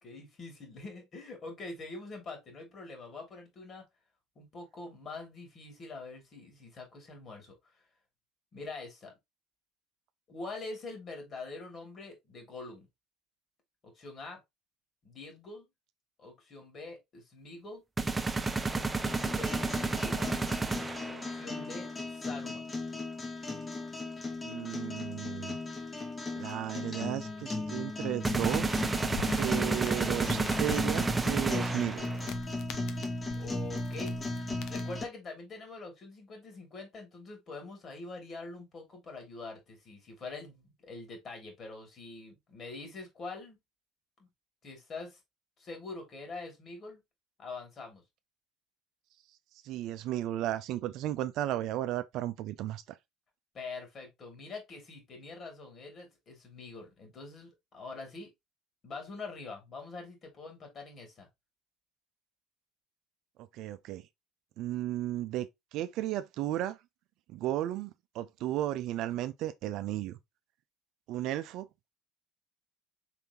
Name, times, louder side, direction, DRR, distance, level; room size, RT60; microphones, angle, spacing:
voice 1, 0.0-3.8 4.4-7.6 8.5-9.1 10.3-12.9 13.8-14.4 15.0-15.7 16.2-17.8 18.7-20.3 21.0-22.7 33.3-43.6 44.2-44.3 44.6-45.2 45.6-47.0 47.4-48.0 53.5-58.3 58.8-61.3, left 3 dB, 45° left, 2.4 m, -44 dB
sound 1, 18.0-21.3 28.2-32.3, right 3 dB, 20° right, 0.7 m, -31 dB
sound 2, 19.0-35.0, left 2 dB, 25° left, 1.2 m, -37 dB
voice 2, 24.4-25.6 26.4-28.8 29.4-32.1 49.6-53.0 63.5-64.1 64.6-66.8 67.3-70.2 71.1-71.7, right 13 dB, 65° right, 0.5 m, -34 dB
sound 3, 29.0-35.0, left 8 dB, 65° left, 0.7 m, -46 dB
4.6 x 3.6 x 2.8 m
hypercardioid pair, 80°, 0 cm